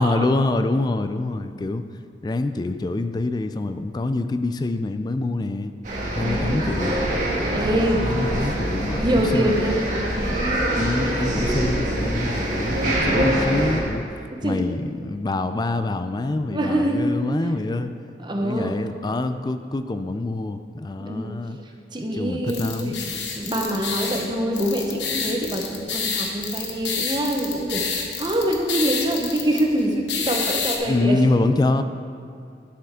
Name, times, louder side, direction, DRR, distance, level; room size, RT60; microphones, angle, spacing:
voice 1, 0.0-1.9 2.2-5.7 6.1-7.0 8.0-9.5 10.8-14.1 14.4-17.9 18.4-21.6 22.1-23.1 30.8-31.8, left 2 dB, 25° left, 10 dB, 0.3 m, -25 dB
sound 1, 5.8-13.8, right 1 dB, 45° right, 1.7 m, -24 dB
voice 2, 6.2-6.8 7.5-8.0 8.4-8.6 9.0-10.4 14.3-14.6 16.5-17.1 18.2-18.8 21.0-21.4 21.9-23.0 23.4-31.5, right 1 dB, 25° right, 2 dB, 0.8 m, -25 dB
sound 2, 22.5-30.8, left 5 dB, 90° left, 1.1 m, -29 dB
11.0 x 6.9 x 3.7 m, 2.4 s
head